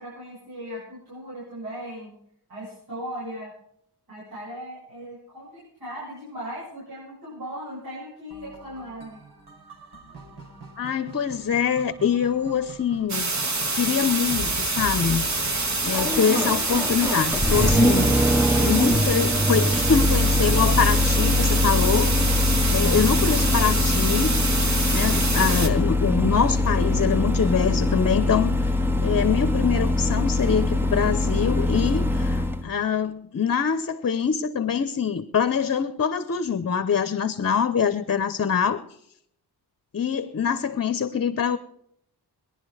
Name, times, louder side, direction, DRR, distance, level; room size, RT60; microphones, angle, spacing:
voice 1, 0.0-2.2 2.5-3.5 4.1-9.2, equal, 65° right, 7.9 m, -38 dB
sound 1, 8.3-17.5, right 1 dB, 85° right, 4.4 m, -42 dB
voice 2, 10.8-13.3 13.7-15.3 15.8-18.1 18.6-22.1 22.7-24.4 24.9-28.5 29.0-38.8 39.9-41.6, left 7 dB, 40° left, 0.8 m, -24 dB
sound 2, 13.1-25.7, right 3 dB, 45° right, 1.7 m, -26 dB
Engine starting, 14.3-32.6, left 1 dB, 5° right, 0.8 m, -23 dB
20.5 x 11.5 x 4.9 m
wide cardioid pair, 175°, 39 cm